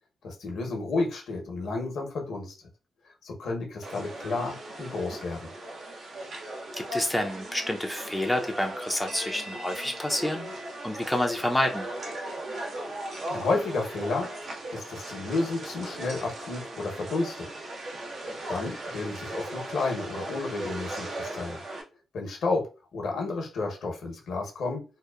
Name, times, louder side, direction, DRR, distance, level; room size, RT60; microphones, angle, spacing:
voice 1, 0.2-2.6 3.2-5.5 12.8-17.5 18.5-21.6 22.1-24.8, left 3 dB, 70° left, 0.7 m, -31 dB
sound 1, 3.8-21.8, right 1 dB, 65° right, 0.6 m, -38 dB
voice 2, 6.8-10.5 10.8-11.9, left 1 dB, 5° left, 0.4 m, -28 dB
2.8 x 2.0 x 2.2 m
cardioid pair, 80°, 0 cm